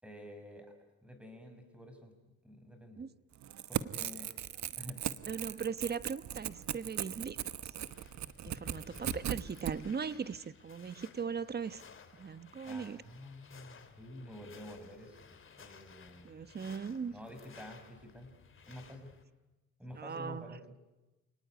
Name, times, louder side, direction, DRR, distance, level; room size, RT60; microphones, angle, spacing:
voice 1, 0.0-0.7 1.0-2.1 2.4-3.0 3.7-4.3 4.7-5.6 12.6-15.3 15.6-16.4 17.1-18.3 18.7-19.1 19.8-20.8, left 1 dB, 5° right, 6.5 m, -49 dB
Crackle / Tearing, 3.4-9.7, right 11 dB, 65° right, 1.1 m, -38 dB
voice 2, 5.3-7.4 7.6-7.7 8.4-11.8 12.1-13.0 16.2-17.1 19.9-20.6, right 6 dB, 35° right, 1.1 m, -39 dB
sound 1, 7.7-19.2, left 5 dB, 40° left, 2.9 m, -55 dB
28.5 x 19.0 x 9.6 m
cardioid pair, 90°, 30 cm